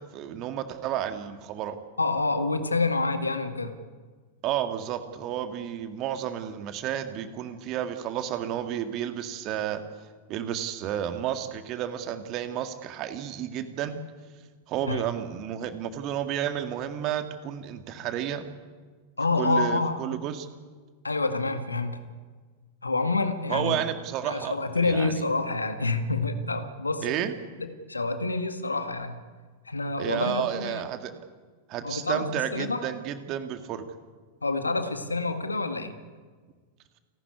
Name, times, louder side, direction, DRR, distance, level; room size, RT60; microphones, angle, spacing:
voice 1, 0.0-1.8 4.4-9.8 10.3-14.0 14.7-18.5 19.4-20.5 23.5-24.6 24.8-25.2 27.0-27.3 30.0-31.1 31.7-33.8, right 10 dB, 40° right, 8 dB, 2.0 m, -31 dB
voice 2, 2.0-3.8 14.9-15.0 19.2-20.0 21.0-22.0 22.8-23.8 24.2-27.1 27.6-29.1 29.7-30.8 31.8-32.8 34.4-35.9, left 3 dB, 80° left, 8 dB, 1.9 m, -27 dB
28.5 x 12.0 x 9.8 m, 1.5 s
figure-of-eight pair, 90°, 0 cm